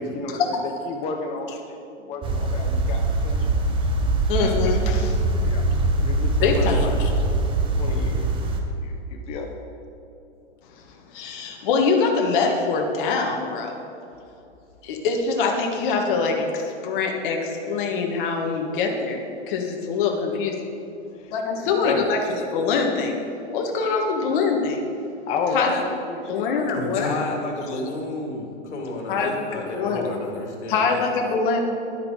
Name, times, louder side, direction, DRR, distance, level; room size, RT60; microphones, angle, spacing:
voice 1, 0.0-3.6 5.4-5.7 6.0-7.0 7.8-8.4 8.8-9.6 18.5-18.6 21.1-21.3 21.6-22.4 25.3-26.6 31.3-31.4, left 4 dB, 20° left, 3 dB, 0.6 m, -32 dB
sound 1, 2.2-8.6, right 2 dB, 15° right, 0.8 m, -22 dB
voice 2, 4.3-5.2 6.4-7.1 11.1-13.8 14.8-19.2 19.5-20.5 21.3-22.2 22.5-23.2 23.5-24.8 25.5-25.8 26.3-27.1 27.7-27.9 29.1-29.3 29.7-30.0 30.7-31.6, left 4 dB, 50° left, 1 dB, 1.5 m, -24 dB
voice 3, 26.7-31.0, left 2 dB, 80° left, 0 dB, 2.5 m, -31 dB
10.5 x 9.5 x 4.8 m, 2.6 s
hypercardioid pair, 145°, 34 cm